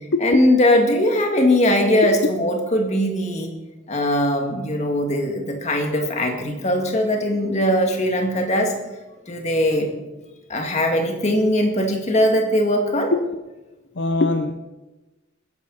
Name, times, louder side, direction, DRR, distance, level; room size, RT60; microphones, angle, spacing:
voice 1, 0.2-3.5 3.9-8.7 9.3-9.9 10.5-13.1, left 1 dB, 35° left, 3 dB, 2.1 m, -20 dB
voice 2, 14.0-14.6, left 2 dB, 60° left, 7 dB, 0.7 m, -21 dB
20.5 x 10.5 x 4.1 m, 1.1 s
head